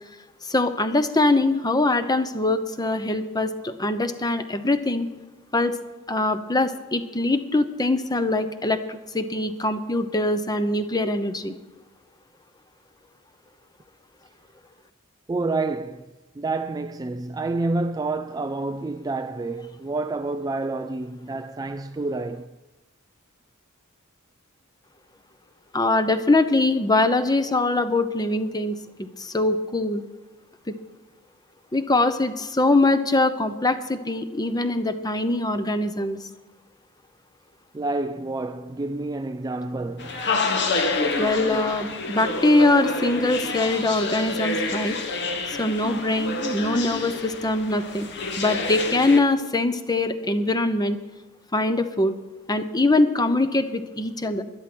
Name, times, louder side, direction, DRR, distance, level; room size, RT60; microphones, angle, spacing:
voice 1, 0.5-5.1 5.5-5.8 6.1-11.5 25.7-30.0 31.7-36.2 41.2-45.0 45.5-48.1 48.4-51.0 51.5-52.1 52.5-54.4, left 2 dB, 20° left, 0.8 m, -23 dB
voice 2, 15.3-16.1 16.4-22.6 37.7-40.1, right 3 dB, 15° right, 0.3 m, -28 dB
sound 1, 40.0-49.2, left 3 dB, 55° left, 1.4 m, -28 dB
12.5 x 11.0 x 6.2 m
head